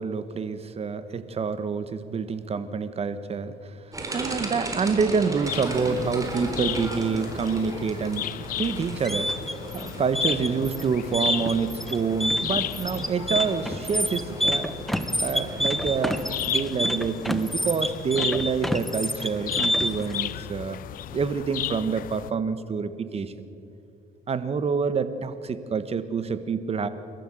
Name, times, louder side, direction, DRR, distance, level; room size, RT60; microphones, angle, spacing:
voice 1, 0.0-3.7 4.1-8.3 8.6-9.3 9.7-14.7 15.2-16.2 16.5-20.8 21.1-23.5 24.3-26.9, right 5 dB, 35° right, 12 dB, 1.4 m, -27 dB
sound 1, 3.9-16.5, right 2 dB, 20° right, 4.1 m, -37 dB
sound 2, 5.4-22.3, left 13 dB, 55° left, 0.5 m, -35 dB
sound 3, 8.8-20.1, equal, ahead, 1.1 m, -28 dB
29.0 x 14.0 x 7.8 m, 2.7 s
cardioid pair, 110°, 17 cm